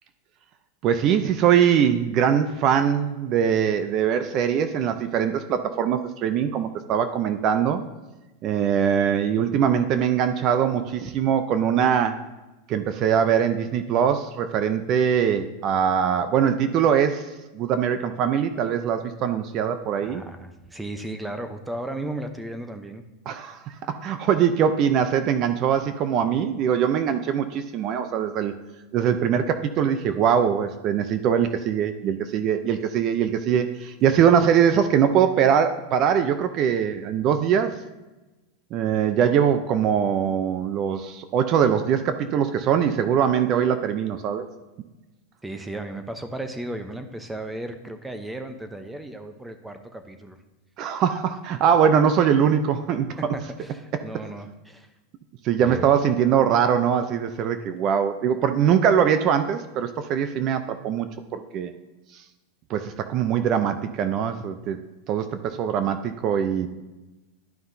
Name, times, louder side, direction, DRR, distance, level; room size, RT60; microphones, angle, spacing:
voice 1, 0.8-7.8 8.4-12.2 12.7-20.2 23.3-28.5 28.9-37.7 38.7-44.5 50.8-53.2 55.4-61.7 62.7-64.8 65.1-66.7, right 8 dB, 40° right, 9 dB, 0.5 m, -22 dB
voice 2, 20.0-23.0 34.1-34.3 45.4-50.4 53.3-54.9 55.6-55.9, right 1 dB, 5° right, 8 dB, 0.8 m, -35 dB
11.5 x 5.7 x 2.7 m, 1.1 s
supercardioid pair, 130°, 0 cm